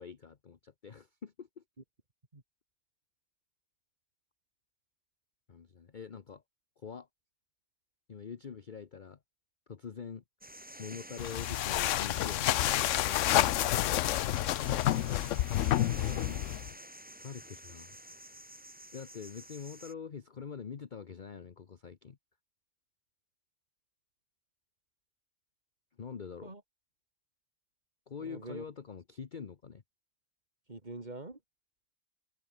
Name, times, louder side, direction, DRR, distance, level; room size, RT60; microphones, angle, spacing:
voice 1, 0.0-1.6 5.5-6.4 6.8-7.1 8.1-9.2 9.7-10.2 10.8-14.0 17.2-18.0 18.9-22.2 26.0-26.5 28.1-29.8, left 6 dB, 40° left, 1.0 m, -45 dB
sound 1, 10.4-19.9, right 1 dB, 5° right, 2.3 m, -49 dB
sound 2, 11.2-16.7, left 13 dB, 70° left, 0.9 m, -29 dB
voice 2, 16.0-16.4 26.4-26.6 28.2-28.6 30.7-31.4, right 2 dB, 30° right, 3.1 m, -45 dB
omnidirectional pair, 1.5 m